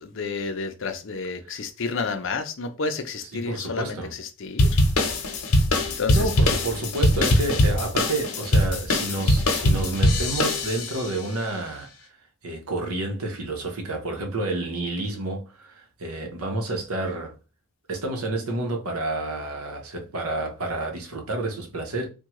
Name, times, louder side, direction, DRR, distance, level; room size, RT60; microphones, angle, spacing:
voice 1, 0.0-4.8 5.5-5.6 6.0-6.3, left 4 dB, 60° left, 0.5 m, -30 dB
voice 2, 3.3-4.1 6.1-12.2 12.4-17.3 17.9-22.1, right 2 dB, 90° right, 0.9 m, -30 dB
sound 1, 4.6-11.1, left 1 dB, 90° left, 0.8 m, -22 dB
3.5 x 2.2 x 3.0 m
head